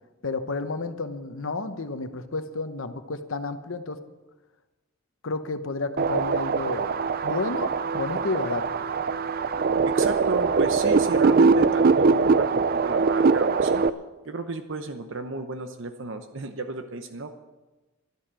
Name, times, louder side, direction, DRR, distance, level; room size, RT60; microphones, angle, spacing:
voice 1, 0.2-4.0 5.2-6.9 7.2-8.6, left 3 dB, 65° left, 9 dB, 1.0 m, -31 dB
sound 1, 6.0-13.9, right 4 dB, 45° right, 0.5 m, -22 dB
voice 2, 9.8-13.8 14.2-17.4, right 3 dB, 60° right, 7 dB, 0.8 m, -33 dB
12.5 x 11.5 x 7.5 m, 1.1 s
head